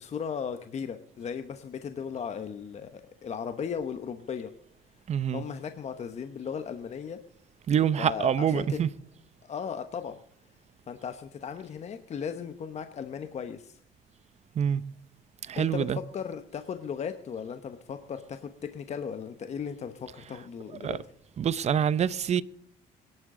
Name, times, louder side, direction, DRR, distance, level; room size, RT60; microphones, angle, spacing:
voice 1, 0.0-4.5 5.3-7.2 8.0-8.8 9.4-10.2 10.9-13.8 15.6-21.0, left 7 dB, 40° left, 1.0 m, -36 dB
voice 2, 5.1-5.4 7.7-8.9 14.5-14.8 15.4-16.0 20.8-21.0 21.4-22.4, right 8 dB, 40° right, 0.7 m, -26 dB
23.0 x 11.0 x 3.8 m
cardioid pair, 110°, 17 cm